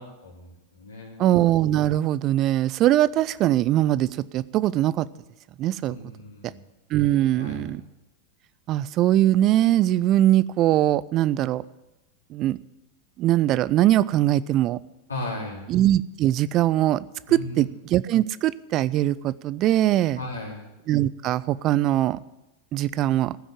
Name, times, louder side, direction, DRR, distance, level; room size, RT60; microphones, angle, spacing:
voice 1, 0.0-1.3 5.9-6.6 7.4-7.7 15.1-15.7 17.3-17.7 20.2-20.7, left 2 dB, 75° left, -2 dB, 3.3 m, -36 dB
voice 2, 1.2-5.1 5.6-6.0 6.9-7.8 8.7-11.6 12.3-12.6 13.2-14.8 15.7-20.2 20.9-22.2 22.7-23.4, right 13 dB, 35° right, 18 dB, 0.4 m, -21 dB
15.0 x 6.3 x 9.9 m, 0.98 s
figure-of-eight pair, 90°, 0 cm